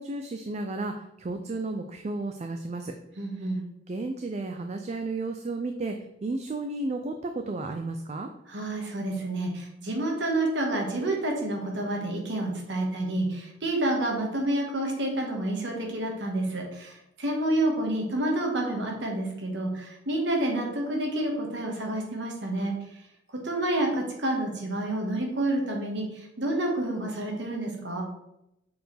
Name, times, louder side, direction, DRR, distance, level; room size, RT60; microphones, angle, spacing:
voice 1, 0.0-2.9 3.9-6.0 6.2-8.3, right 2 dB, 35° right, 6 dB, 0.4 m, -33 dB
voice 2, 3.2-3.6 8.5-22.7 23.4-28.0, right 1 dB, 65° right, 1 dB, 1.5 m, -29 dB
6.8 x 4.3 x 3.3 m, 0.84 s
head